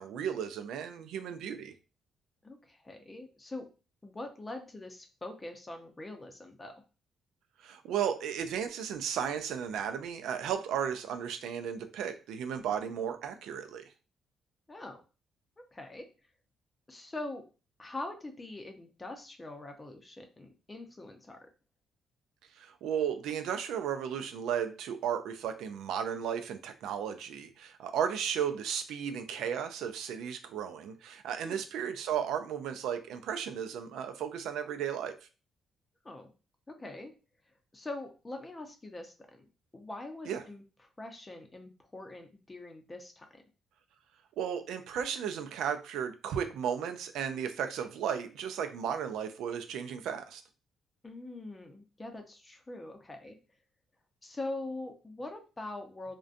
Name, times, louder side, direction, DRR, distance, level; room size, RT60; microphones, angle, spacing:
voice 1, 0.0-1.7 7.6-13.8 22.6-35.2 40.3-40.4 44.4-50.4, right 8 dB, 85° right, 8 dB, 0.3 m, -34 dB
voice 2, 2.4-3.7 4.0-6.7 14.7-15.0 15.6-16.1 16.9-17.4 17.8-21.5 31.4-31.6 36.0-36.3 36.7-37.1 37.7-39.5 39.7-40.6 41.0-43.4 51.0-53.4 54.2-56.2, left 2 dB, 20° left, 5 dB, 0.6 m, -43 dB
2.4 x 2.2 x 2.5 m, 0.33 s
cardioid pair, 90°, 0 cm